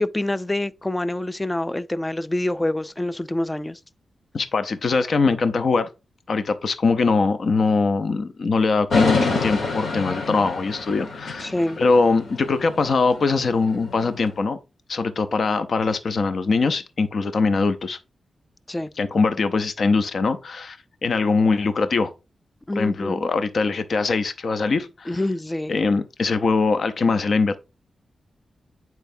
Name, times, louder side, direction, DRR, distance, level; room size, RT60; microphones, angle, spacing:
voice 1, 0.0-3.8 11.4-11.8 18.7-18.9 22.7-23.3 25.1-25.7, left 1 dB, 15° left, 0.4 m, -26 dB
voice 2, 4.3-5.9 6.3-11.5 11.8-14.6 14.9-18.0 19.0-22.1 22.8-25.1 25.7-27.6, left 4 dB, 60° left, 0.6 m, -22 dB
sound 1, 8.9-14.3, left 3 dB, 80° left, 1.5 m, -28 dB
8.9 x 4.6 x 2.6 m
wide cardioid pair, 115°, 0 cm